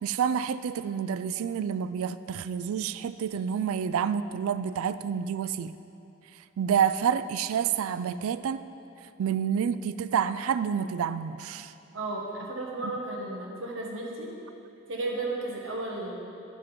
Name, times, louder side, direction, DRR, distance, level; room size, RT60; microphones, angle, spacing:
voice 1, 0.0-5.8 6.6-8.6 9.2-11.7, right 8 dB, 85° right, 13 dB, 0.3 m, -28 dB
voice 2, 11.9-14.3 14.9-16.2, right 2 dB, 70° right, -2 dB, 1.4 m, -34 dB
9.9 x 7.3 x 4.4 m, 2.8 s
head